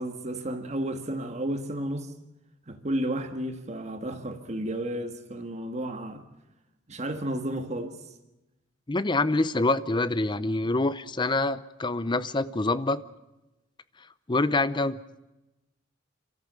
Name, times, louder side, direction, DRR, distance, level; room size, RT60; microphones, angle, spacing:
voice 1, 0.0-2.1 2.7-6.2 6.9-8.0, right 1 dB, 35° right, 1.6 m, -32 dB
voice 2, 8.9-13.0 14.3-15.0, left 2 dB, 25° left, 0.6 m, -26 dB
26.0 x 14.0 x 8.3 m
head